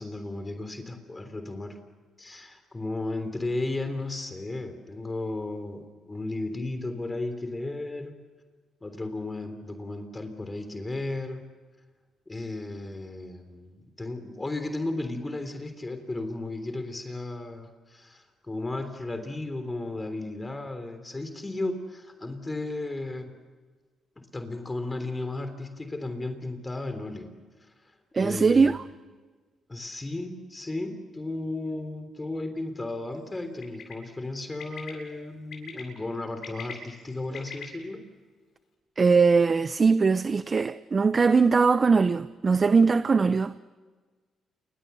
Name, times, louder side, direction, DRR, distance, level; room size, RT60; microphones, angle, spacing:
voice 1, 0.0-1.8 2.2-8.1 8.8-11.5 12.3-23.3 24.2-27.3 27.6-27.9 28.2-28.7 29.7-38.1, left 2 dB, 20° left, 3.4 m, -34 dB
voice 2, 28.1-28.8 39.0-43.5, right 4 dB, 35° right, 0.7 m, -21 dB
Bird, 33.6-33.9 34.6-34.9 35.5-35.8 36.3-37.6, left 6 dB, 65° left, 7.8 m, -40 dB
29.0 x 24.5 x 7.0 m
cardioid pair, 90°, 0 cm